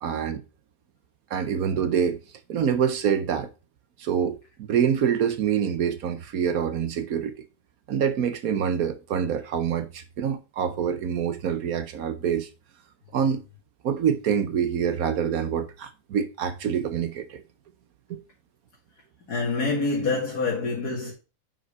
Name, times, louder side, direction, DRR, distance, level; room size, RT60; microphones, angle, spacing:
voice 1, 0.0-0.4 1.3-2.2 2.5-3.5 4.0-7.4 7.9-12.5 13.1-13.4 13.8-17.4 18.1-18.2, right 8 dB, 70° right, 1.2 m, -26 dB
voice 2, 19.3-21.1, left 3 dB, 90° left, 2.6 m, -26 dB
5.9 x 5.2 x 5.5 m
omnidirectional pair, 1.6 m